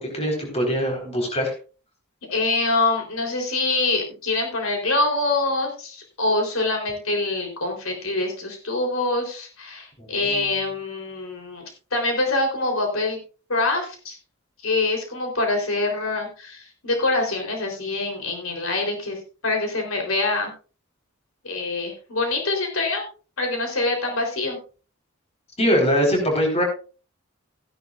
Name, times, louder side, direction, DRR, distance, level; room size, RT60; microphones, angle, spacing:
voice 1, 0.0-1.5 10.0-10.5 25.6-26.6, equal, 30° left, 1 dB, 4.4 m, -22 dB
voice 2, 2.3-11.6 11.9-13.2 13.5-14.2 14.6-20.5 21.4-23.0 23.4-24.6, left 2 dB, 85° left, 2 dB, 3.8 m, -25 dB
16.0 x 10.5 x 2.5 m, 0.36 s
head